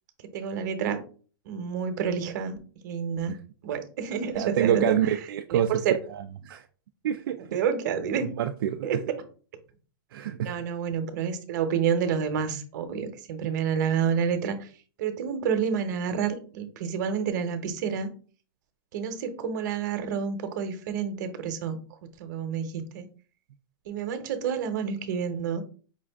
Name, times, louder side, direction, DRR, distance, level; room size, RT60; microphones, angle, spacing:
voice 1, 0.3-1.0 1.4-2.6 2.8-3.4 3.6-5.0 5.5-5.9 7.4-8.3 8.8-9.0 10.4-14.7 15.0-18.1 18.9-21.8 22.2-23.1 23.9-25.6, right 7 dB, 50° right, 0.9 m, -29 dB
voice 2, 4.3-5.7 6.1-6.6 7.0-7.6 8.2-9.0 10.1-10.6, right 10 dB, 70° right, 0.4 m, -27 dB
5.3 x 2.4 x 3.4 m
supercardioid pair, 165°, 12 cm